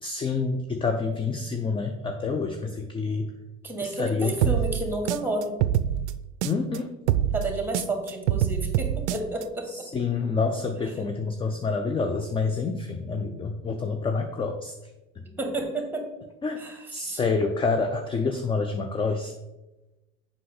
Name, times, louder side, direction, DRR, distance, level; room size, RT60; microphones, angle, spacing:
voice 1, 0.0-3.3 3.8-4.6 6.4-6.9 9.7-14.7 16.4-16.6 16.9-19.3, left 4 dB, 15° left, 6 dB, 0.4 m, -28 dB
voice 2, 3.6-5.6 7.3-9.8 15.2-16.0 16.6-17.2, right 2 dB, 5° right, 4 dB, 1.6 m, -31 dB
sound 1, 4.4-6.8 7.1-9.4, right 11 dB, 60° right, 0.5 m, -25 dB
7.4 x 5.2 x 4.0 m, 1.0 s
figure-of-eight pair, 70°, 40 cm